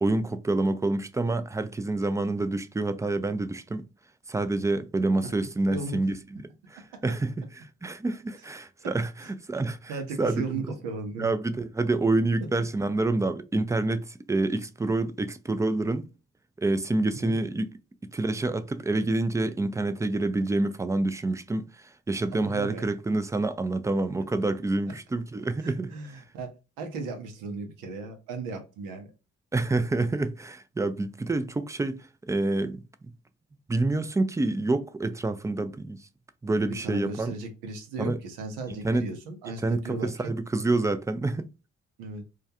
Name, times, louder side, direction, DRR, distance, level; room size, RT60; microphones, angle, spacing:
voice 1, 0.0-3.9 4.3-6.4 6.7-9.1 9.5-10.6 11.2-16.1 16.6-17.7 18.1-21.6 22.1-25.9 29.5-32.8 33.7-36.0 36.4-37.3 38.0-38.2 38.7-39.1 39.6-41.5, right 2 dB, 10° right, 0.3 m, -27 dB
voice 2, 9.9-11.3 17.1-17.3 22.3-22.9 25.6-26.5 26.8-29.1 36.7-40.1 42.0-42.2, right 3 dB, 85° right, 0.7 m, -36 dB
2.3 x 2.2 x 2.7 m
hypercardioid pair, 45°, 32 cm